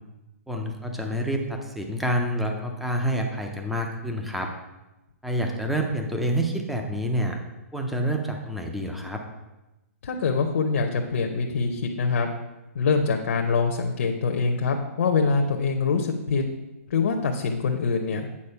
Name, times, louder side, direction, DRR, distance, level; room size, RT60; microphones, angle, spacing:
voice 1, 0.5-4.5 5.2-7.4 7.7-9.2, equal, ahead, 2 dB, 0.4 m, -28 dB
voice 2, 10.0-12.3 12.7-16.4 16.9-18.3, left 4 dB, 60° left, 3 dB, 0.8 m, -24 dB
8.6 x 4.2 x 5.5 m, 1.0 s
hypercardioid pair, 175°, 8 cm